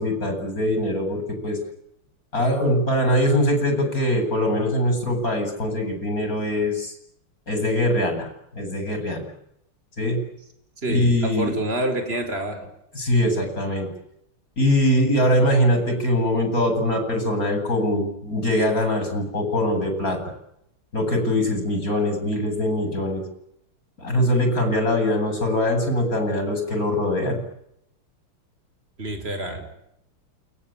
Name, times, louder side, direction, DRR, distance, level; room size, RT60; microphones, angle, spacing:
voice 1, 0.0-1.6 2.3-6.9 7.5-9.2 10.0-10.2 10.9-11.6 12.9-13.9 14.6-20.2 20.9-23.2 24.0-27.4, left 1 dB, 40° left, 6 dB, 8.5 m, -22 dB
voice 2, 10.8-12.7 29.0-29.6, right 1 dB, 25° right, 7 dB, 5.1 m, -27 dB
29.0 x 22.5 x 9.0 m, 0.78 s
omnidirectional pair, 2.4 m